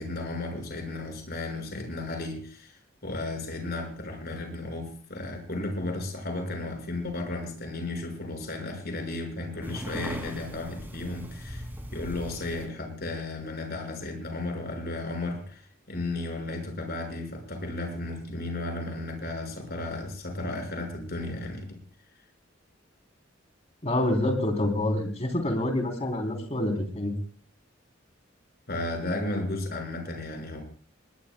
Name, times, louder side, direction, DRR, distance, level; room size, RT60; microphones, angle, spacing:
voice 1, 0.0-11.6 11.9-15.6 15.9-21.8 28.7-30.6, left 2 dB, 55° left, 3 dB, 6.0 m, -34 dB
sound 1, 9.6-12.6, equal, 10° right, 2.8 m, -39 dB
voice 2, 23.8-27.1, left 1 dB, 35° left, 3 dB, 3.7 m, -27 dB
21.5 x 20.0 x 2.3 m, 0.41 s
head